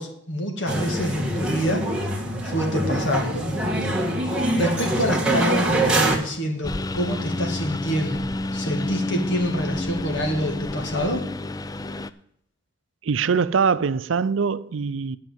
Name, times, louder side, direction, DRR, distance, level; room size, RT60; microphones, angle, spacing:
voice 1, 0.0-1.8 2.4-3.5 3.8-4.0 4.5-8.2 8.5-11.3, equal, 70° left, 2.3 m, -26 dB
sound 1, 0.7-6.2, right 1 dB, 5° right, 1.6 m, -24 dB
Engine, 6.6-12.1, left 2 dB, 20° left, 0.4 m, -29 dB
voice 2, 13.0-15.2, right 5 dB, 90° right, 0.5 m, -23 dB
10.5 x 5.5 x 7.5 m
head